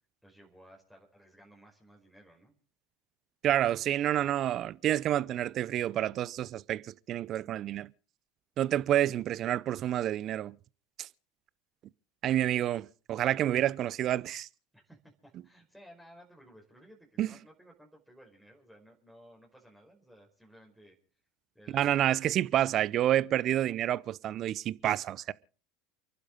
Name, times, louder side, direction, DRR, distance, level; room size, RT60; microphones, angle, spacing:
voice 1, 0.2-2.5 14.7-21.0 21.5-22.1, equal, ahead, 4.9 m, -57 dB
voice 2, 3.4-7.9 8.6-10.6 11.0-11.1 12.2-14.5 17.2-17.3 21.7-25.3, right 12 dB, 45° right, 0.7 m, -29 dB
29.0 x 11.5 x 3.9 m
hypercardioid pair, 80°, 0 cm